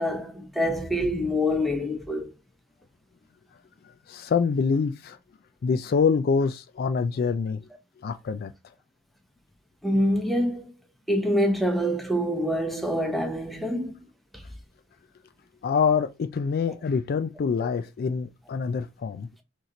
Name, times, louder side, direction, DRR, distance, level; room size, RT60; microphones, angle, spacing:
voice 1, 0.0-2.3 9.8-10.7 11.1-14.0, equal, ahead, 0.8 m, -25 dB
voice 2, 4.1-5.2 5.6-7.6 8.0-8.5 15.6-19.3, left 5 dB, 50° left, 0.3 m, -25 dB
4.1 x 3.0 x 3.8 m
head